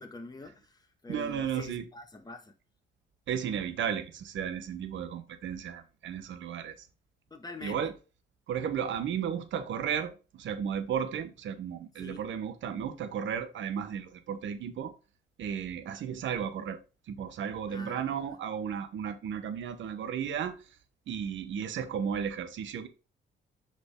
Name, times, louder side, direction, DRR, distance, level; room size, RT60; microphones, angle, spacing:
voice 1, 0.0-2.5 7.3-7.9 12.0-12.3 17.7-18.3, left 2 dB, 20° left, 1.7 m, -45 dB
voice 2, 1.1-1.8 3.3-6.7 7.6-7.9 8.5-14.9 15.4-16.8 17.1-20.5 21.1-22.9, right 8 dB, 70° right, 1.2 m, -34 dB
6.9 x 5.1 x 3.7 m
cardioid pair, 90°, 20 cm